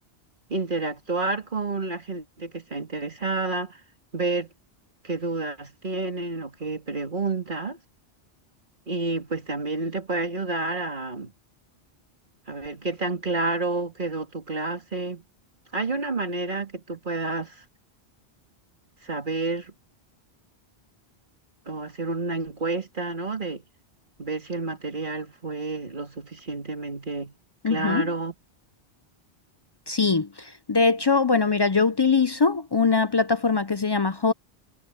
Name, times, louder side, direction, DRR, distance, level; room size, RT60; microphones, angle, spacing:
voice 1, 0.5-3.8 4.1-4.5 5.0-7.8 8.9-11.3 12.5-15.2 15.7-17.6 19.0-19.7 21.7-23.6 24.2-27.3 27.7-28.3, right 3 dB, 50° right, 2.5 m, -29 dB
voice 2, 27.6-28.0 29.9-34.3, left 4 dB, 45° left, 0.3 m, -22 dB
omnidirectional pair, 1.1 m